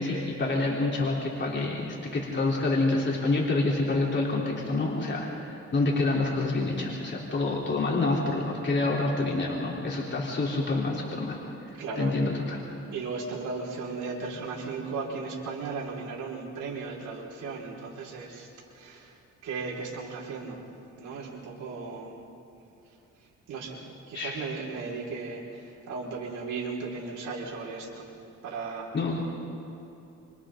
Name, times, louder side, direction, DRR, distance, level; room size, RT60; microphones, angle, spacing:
voice 1, 0.0-11.4 12.0-12.6 24.1-24.4 28.9-29.2, left 2 dB, 35° left, -4 dB, 3.7 m, -27 dB
voice 2, 11.8-12.1 12.9-18.5 18.7-19.1 19.4-20.6 21.0-22.2 23.5-28.1 28.4-28.9, right 4 dB, 80° right, -3 dB, 5.0 m, -36 dB
29.0 x 26.5 x 3.9 m, 2.9 s
cardioid pair, 90°, 30 cm